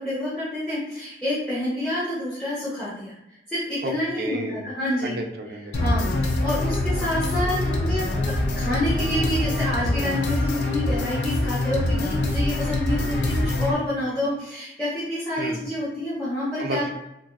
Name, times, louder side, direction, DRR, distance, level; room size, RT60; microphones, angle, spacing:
voice 1, 0.0-3.1 3.5-5.2 5.8-16.9, left 1 dB, 5° left, -10 dB, 0.9 m, -28 dB
voice 2, 3.8-4.7 5.0-5.8 15.4-15.6 16.6-16.9, right 1 dB, 55° right, 4 dB, 0.4 m, -31 dB
sound 1, 5.7-13.7, left 1 dB, 70° left, 0.5 m, -24 dB
3.4 x 2.6 x 2.2 m, 0.87 s
head